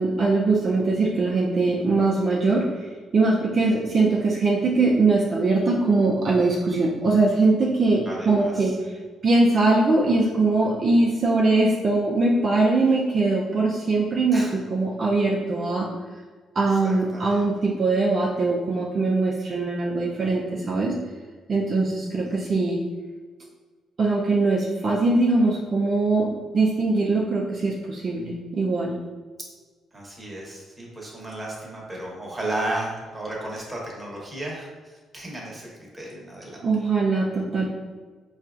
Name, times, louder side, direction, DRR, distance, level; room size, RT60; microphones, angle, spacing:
voice 1, 0.0-8.8 9.2-14.4 14.7-15.9 16.6-21.0 21.5-22.8 24.0-28.9 36.6-37.7, right 3 dB, 45° right, -3 dB, 0.4 m, -21 dB
voice 2, 8.1-8.7 14.3-14.5 16.7-17.5 29.9-36.7, right 1 dB, 15° right, -3 dB, 1.0 m, -34 dB
4.2 x 2.3 x 2.4 m, 1.4 s
cardioid pair, 90°, 0 cm